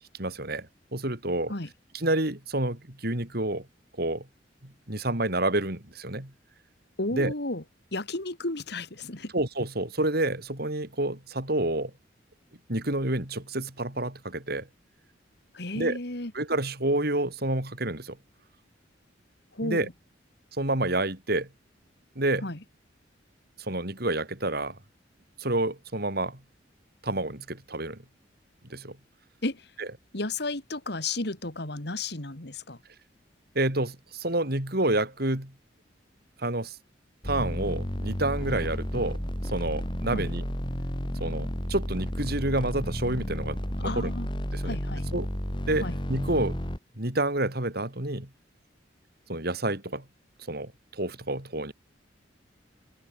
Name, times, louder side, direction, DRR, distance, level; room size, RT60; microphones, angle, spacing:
voice 1, 0.2-1.5 1.9-3.6 4.0-4.2 4.6-6.3 7.1-7.3 9.3-11.9 12.7-14.7 15.7-16.0 16.3-18.2 19.6-19.9 20.6-21.5 22.2-22.4 23.7-24.8 25.4-26.4 27.0-28.0 28.7-29.0 29.8-29.9 33.5-35.5 36.4-36.8 37.2-39.2 39.4-40.4 41.2-44.1 44.5-44.8 45.1-45.3 45.7-46.6 47.0-48.3 49.3-50.0 50.5-50.7 51.0-51.7, right 2 dB, 55° right, 4.6 m, -29 dB
voice 2, 7.0-7.6 7.9-9.3 15.5-16.3 19.5-19.9 22.4-22.6 29.4-29.7 30.1-32.8 40.1-40.3 43.8-44.3 44.6-45.1 45.8-46.0, left 2 dB, 60° left, 3.0 m, -33 dB
sound 1, 37.2-46.8, equal, 25° left, 5.6 m, -32 dB
open air
head